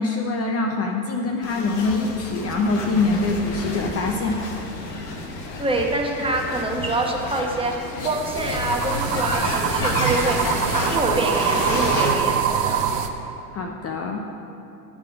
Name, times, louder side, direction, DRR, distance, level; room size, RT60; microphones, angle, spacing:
voice 1, 0.0-4.4 13.5-14.2, left 3 dB, 30° left, 3 dB, 0.6 m, -24 dB
sound 1, 1.4-12.2, left 3 dB, 85° left, 1.2 m, -30 dB
voice 2, 5.6-7.7 8.0-10.4 10.7-12.9, right 2 dB, 10° right, 0 dB, 1.0 m, -25 dB
sound 2, 8.0-13.1, right 8 dB, 85° right, 0.7 m, -24 dB
11.0 x 4.9 x 4.8 m, 2.8 s
supercardioid pair, 100°, 47 cm